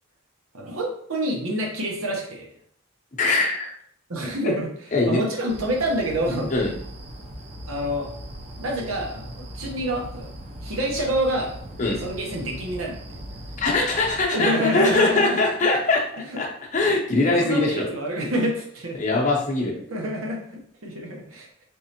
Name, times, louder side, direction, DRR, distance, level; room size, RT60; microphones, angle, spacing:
voice 1, 0.5-2.5 4.1-4.7 5.1-6.5 7.7-8.1 8.6-10.3 10.6-11.5 12.0-13.2 14.3-15.4 16.3-16.4 17.4-19.0 19.9-21.6, right 1 dB, 80° right, -1 dB, 0.9 m, -27 dB
voice 2, 3.2-3.7 4.4-4.5 4.9-5.2 6.5-6.7 11.8-12.0 13.6-16.5 16.7-17.8 19.0-19.7, left 3 dB, 35° left, 0 dB, 0.7 m, -22 dB
sound 1, 5.5-14.2, equal, 30° right, 0.5 m, -39 dB
3.5 x 3.2 x 2.9 m, 0.64 s
head